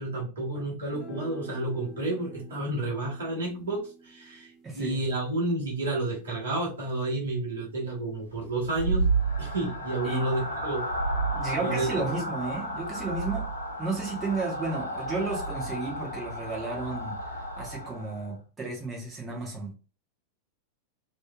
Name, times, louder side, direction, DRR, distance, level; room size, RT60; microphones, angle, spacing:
voice 1, 0.0-9.0 9.4-10.8 11.6-12.1, right 2 dB, 65° right, 1.3 m, -31 dB
sound 1, 0.9-7.4, right 2 dB, 15° left, 1.1 m, -48 dB
voice 2, 4.6-5.0 10.0-10.3 11.3-13.5 13.8-17.2 17.6-19.7, right 3 dB, 20° right, 1.5 m, -33 dB
sound 2, 8.3-18.3, right 2 dB, 80° left, 0.9 m, -32 dB
3.1 x 3.1 x 2.3 m
figure-of-eight pair, 90°, 0 cm